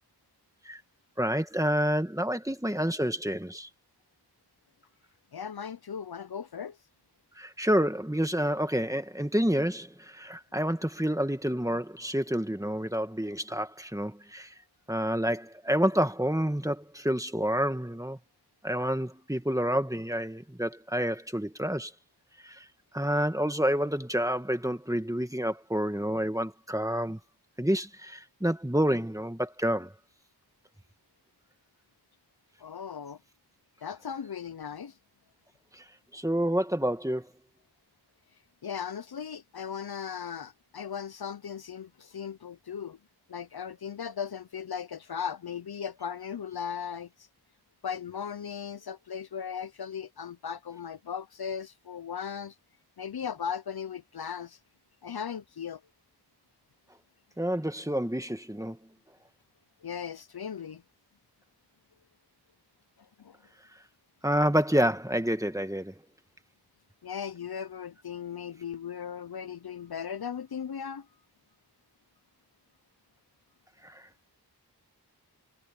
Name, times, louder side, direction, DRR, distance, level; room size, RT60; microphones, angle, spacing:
voice 1, 1.2-3.7 7.4-14.5 14.9-18.2 18.6-21.9 22.4-22.6 22.9-27.2 27.6-29.9 35.8-35.9 36.1-37.3 57.4-58.8 64.2-66.0 73.8-74.0, equal, 10° right, 1.9 m, -28 dB
voice 2, 5.3-6.8 32.6-33.2 33.8-34.9 38.6-43.0 43.3-47.1 47.8-52.5 53.0-54.6 55.0-55.8 59.8-60.8 63.2-63.4 67.0-71.1, left 7 dB, 65° left, 0.7 m, -37 dB
wide cardioid pair, 55°, 40 cm